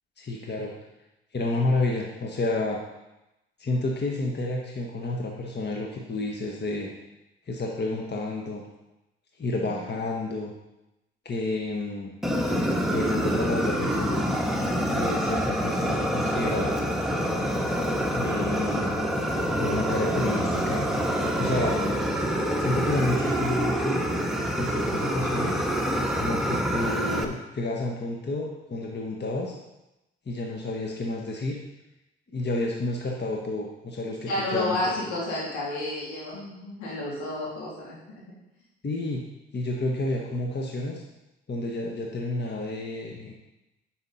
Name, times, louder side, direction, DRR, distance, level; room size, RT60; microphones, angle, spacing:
voice 1, 0.2-0.7 1.3-2.8 3.6-6.9 7.5-8.6 9.4-10.5 11.2-12.1 12.9-14.3 14.9-16.7 18.1-19.1 19.6-20.9 21.4-21.8 22.6-24.0 24.5-25.7 26.2-29.5 30.3-31.6 32.3-35.0 38.8-39.2 39.5-41.0 41.5-43.3, left 2 dB, 35° left, 0 dB, 1.5 m, -30 dB
voice 2, 9.5-9.9 21.7-22.1 34.3-38.2, left 1 dB, 75° left, -5 dB, 3.1 m, -31 dB
Fire, 12.2-27.2, equal, ahead, 1.4 m, -26 dB
9.6 x 6.3 x 4.1 m, 0.94 s
hypercardioid pair, 45°, 30 cm